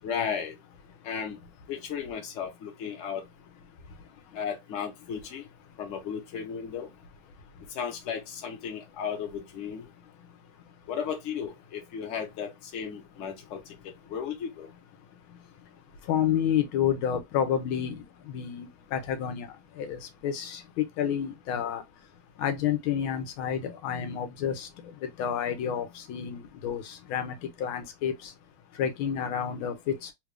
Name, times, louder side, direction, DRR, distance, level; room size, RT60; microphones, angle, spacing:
voice 1, 0.0-0.6 1.0-1.4 1.7-3.2 4.3-5.5 5.8-6.9 7.7-9.9 10.9-14.7, left 7 dB, 45° left, 1.0 m, -35 dB
voice 2, 16.1-19.5 19.8-20.6 21.0-21.8 22.4-24.7 25.2-28.3 28.8-30.1, left 9 dB, 85° left, 1.4 m, -30 dB
3.5 x 2.4 x 3.3 m
omnidirectional pair, 2.3 m